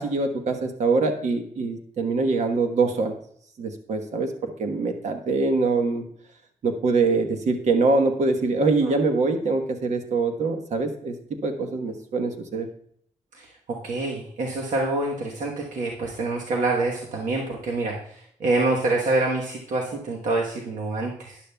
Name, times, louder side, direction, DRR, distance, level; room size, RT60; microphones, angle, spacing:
voice 1, 0.0-3.2 3.6-4.3 4.6-6.0 6.6-11.2 11.4-12.7, right 3 dB, 65° right, 5 dB, 1.2 m, -24 dB
voice 2, 13.3-18.0 18.4-21.4, right 2 dB, 90° right, -1 dB, 1.3 m, -26 dB
12.0 x 10.5 x 2.3 m, 0.64 s
wide cardioid pair, 165°, 13 cm